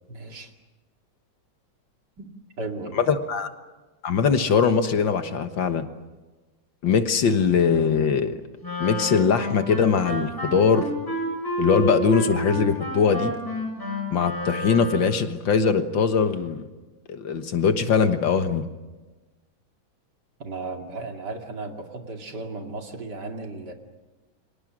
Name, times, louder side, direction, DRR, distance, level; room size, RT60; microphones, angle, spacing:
voice 1, 0.1-0.5 2.2-2.3 2.6-3.2 20.4-23.7, right 3 dB, 55° right, 3 dB, 3.0 m, -35 dB
voice 2, 3.0-3.5 4.0-5.9 6.8-8.4 8.8-10.9 11.6-13.3 14.1-16.6 17.1-18.6, left 6 dB, 65° left, 8 dB, 2.0 m, -21 dB
Wind instrument woodwind instrument, 8.6-15.2, equal, 10° left, 7.1 m, -30 dB
29.5 x 25.0 x 6.3 m, 1.2 s
omnidirectional pair, 2.3 m